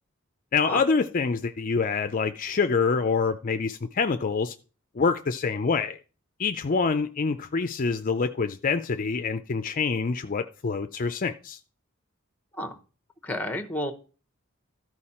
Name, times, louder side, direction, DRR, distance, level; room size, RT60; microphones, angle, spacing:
voice 1, 0.5-4.6 5.0-6.0 6.4-11.6, left 5 dB, 40° left, 0.4 m, -26 dB
voice 2, 13.2-13.9, left 1 dB, 10° left, 0.9 m, -31 dB
13.5 x 4.6 x 4.3 m
head